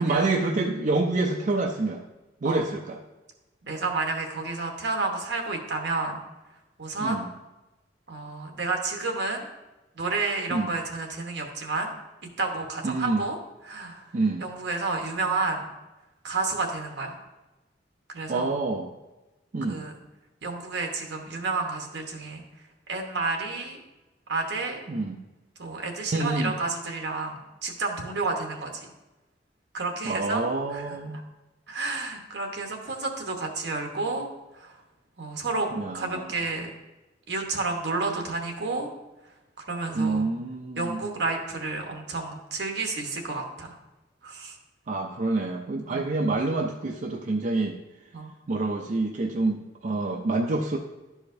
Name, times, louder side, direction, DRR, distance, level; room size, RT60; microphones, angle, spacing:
voice 1, 0.0-2.0 2.4-3.0 7.0-7.3 10.5-10.7 12.8-13.2 14.1-14.4 18.3-18.9 19.5-19.8 24.9-25.2 26.1-26.5 30.0-31.2 35.7-36.3 39.9-41.0 44.9-47.8 48.5-50.8, right 2 dB, 45° right, 1 dB, 0.4 m, -27 dB
voice 2, 3.6-6.2 6.8-7.3 8.1-9.5 9.9-11.9 12.4-13.4 13.7-14.0 14.4-15.7 16.2-17.2 18.1-18.5 19.7-19.9 20.4-22.4 22.9-23.8 24.3-24.8 25.6-28.9 29.7-30.4 30.7-30.8 31.7-34.3 34.5-34.8 35.2-35.7 35.9-36.7 37.3-38.9 39.6-40.3 40.8-43.8 44.2-44.6 45.9-46.0 48.1-48.3, right 3 dB, 65° right, 3 dB, 1.1 m, -30 dB
11.5 x 4.9 x 2.6 m, 1.1 s
head